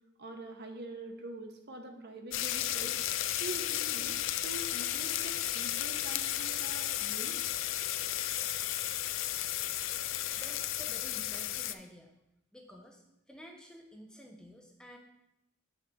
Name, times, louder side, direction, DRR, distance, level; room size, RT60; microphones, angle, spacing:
voice 1, 0.2-7.4, right 2 dB, 50° right, 4 dB, 0.9 m, -45 dB
sound 1, 2.3-11.7, left 12 dB, 65° left, 0.3 m, -34 dB
voice 2, 10.4-12.1 12.5-15.0, equal, 5° left, 2 dB, 0.5 m, -51 dB
7.4 x 5.7 x 3.4 m, 0.87 s
head